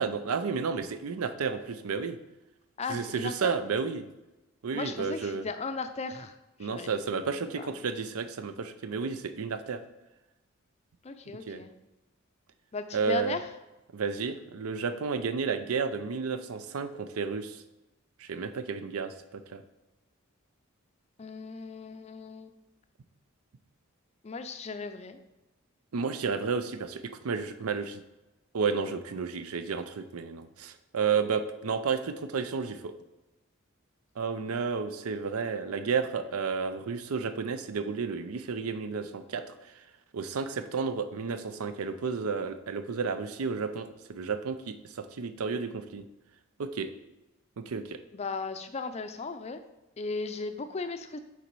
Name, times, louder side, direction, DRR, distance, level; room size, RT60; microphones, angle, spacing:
voice 1, 0.0-2.2 2.9-4.1 4.6-5.4 6.6-9.8 11.5-11.6 12.9-13.4 13.9-17.6 18.2-19.6 25.9-28.0 28.5-32.9 34.2-39.5 40.1-46.1 46.6-46.9 47.6-48.0, right 5 dB, 90° right, 10 dB, 0.5 m, -32 dB
voice 2, 2.8-3.5 4.7-6.9 7.3-7.8 11.0-11.7 12.7-13.5 21.2-22.5 24.2-25.2 48.1-49.6 50.0-51.2, left 4 dB, 30° left, 9 dB, 0.4 m, -36 dB
7.0 x 4.0 x 4.6 m, 1.0 s
head